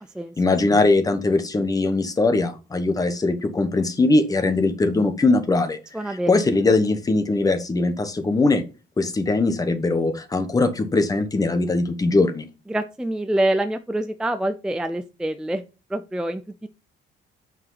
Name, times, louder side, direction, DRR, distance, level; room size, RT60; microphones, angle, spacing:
voice 1, 0.4-5.8 6.0-8.6 9.0-12.5, left 3 dB, 20° left, 9 dB, 1.0 m, -21 dB
voice 2, 5.9-6.3 12.7-15.6 15.9-16.4, right 1 dB, 5° right, 9 dB, 0.4 m, -25 dB
8.6 x 4.9 x 3.9 m, 0.31 s
cardioid pair, 160°, 20 cm